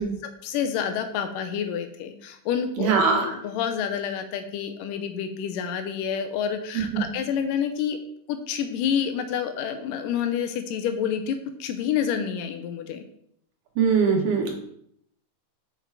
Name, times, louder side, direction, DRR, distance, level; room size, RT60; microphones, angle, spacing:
voice 1, 0.0-8.0 8.3-13.0, left 8 dB, 80° left, 7 dB, 2.2 m, -28 dB
voice 2, 2.8-3.3 6.7-7.0 13.8-14.5, right 5 dB, 70° right, 1 dB, 2.7 m, -21 dB
5.9 x 5.7 x 4.6 m, 0.71 s
omnidirectional pair, 4.0 m